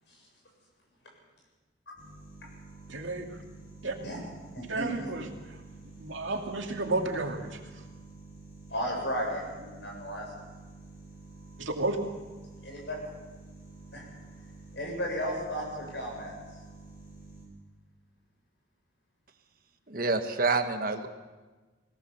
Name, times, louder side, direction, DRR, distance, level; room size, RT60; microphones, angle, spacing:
sound 1, 1.9-17.4, right 3 dB, 45° left, 6.1 m, -49 dB
voice 1, 2.9-3.3 3.8-4.0 4.7-5.3 6.0-7.6 11.6-12.0, right 2 dB, 90° right, 3 dB, 2.5 m, -31 dB
voice 2, 4.5-5.1 8.7-10.3 12.6-13.1 13.9-14.0 14.7-16.6, equal, 65° left, 0 dB, 7.5 m, -35 dB
voice 3, 19.9-21.1, right 3 dB, 50° right, 7 dB, 1.4 m, -27 dB
20.5 x 17.5 x 7.1 m, 1.3 s
head